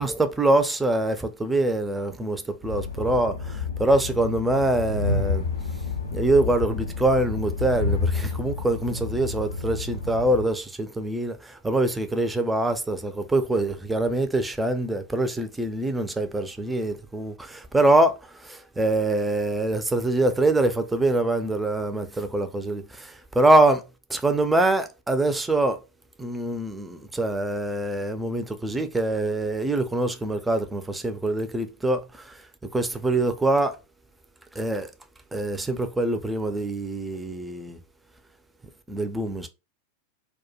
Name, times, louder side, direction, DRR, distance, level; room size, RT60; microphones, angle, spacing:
voice 1, 0.0-5.5 6.1-23.8 24.1-25.8 26.2-33.7 34.6-34.9 35.3-37.8 38.9-39.5, right 2 dB, 10° right, 0.3 m, -24 dB
Train, 2.6-10.5, left 4 dB, 75° left, 0.4 m, -29 dB
2.2 x 2.1 x 2.7 m
figure-of-eight pair, 90°, 0 cm